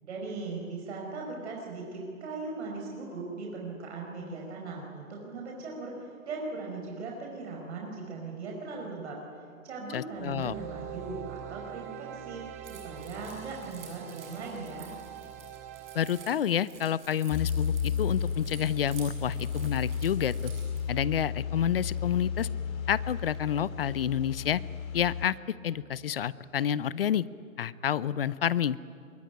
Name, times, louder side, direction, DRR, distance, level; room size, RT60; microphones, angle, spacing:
voice 1, 0.0-9.2 9.6-14.9, right 3 dB, 50° right, -1 dB, 5.5 m, -39 dB
voice 2, 9.9-10.5 15.9-20.5 20.9-22.5 22.9-24.6 24.9-25.4 25.6-27.2 27.6-28.8, left 9 dB, 45° left, 19 dB, 0.7 m, -29 dB
sound 1, 10.1-16.3, right 10 dB, 10° right, 0.6 m, -43 dB
Keys jangling, 12.6-20.8, right 7 dB, 35° right, 7.5 m, -51 dB
sound 2, 17.3-25.3, left 6 dB, 15° left, 2.1 m, -33 dB
26.5 x 22.5 x 9.4 m, 2.5 s
hypercardioid pair, 160°, 41 cm